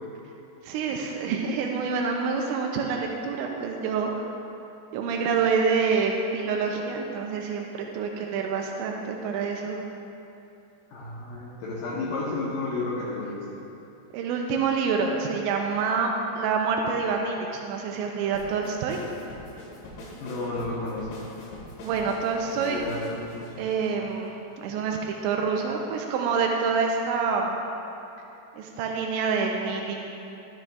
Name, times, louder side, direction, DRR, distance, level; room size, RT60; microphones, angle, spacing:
voice 1, 0.6-4.3 4.9-9.8 14.1-19.0 21.8-22.8 23.6-27.6 28.5-30.0, right 5 dB, 90° right, 1 dB, 2.9 m, -27 dB
voice 2, 10.9-13.4 20.2-21.1 22.7-23.5, left 3 dB, 75° left, -6 dB, 2.1 m, -32 dB
sound 1, 18.3-24.6, left 1 dB, 90° left, 3.9 m, -43 dB
12.0 x 9.1 x 2.4 m, 2.8 s
omnidirectional pair, 5.1 m